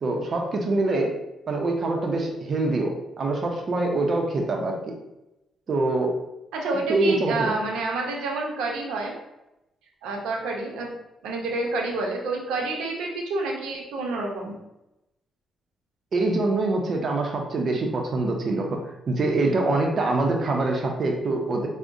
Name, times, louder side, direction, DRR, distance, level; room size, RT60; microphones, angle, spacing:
voice 1, 0.0-1.1 1.5-5.0 5.7-6.1 6.9-7.6 16.1-18.8 19.1-21.7, right 2 dB, 50° right, 2 dB, 0.6 m, -24 dB
voice 2, 6.5-9.1 10.0-10.9 11.2-14.5, right 3 dB, 90° right, 0 dB, 0.7 m, -28 dB
4.7 x 2.1 x 2.5 m, 0.93 s
cardioid pair, 90°, 0 cm